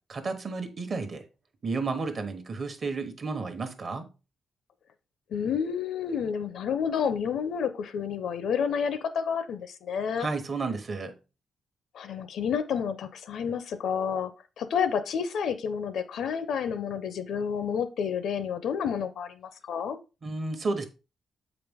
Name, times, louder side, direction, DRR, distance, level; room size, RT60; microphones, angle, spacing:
voice 1, 0.1-1.2 1.6-4.0 10.2-11.1 20.2-20.9, right 3 dB, 30° right, 1.0 m, -32 dB
voice 2, 5.3-10.3 11.9-20.0, left 7 dB, 65° left, 0.7 m, -30 dB
7.8 x 5.0 x 3.5 m
wide cardioid pair, 180°, 0 cm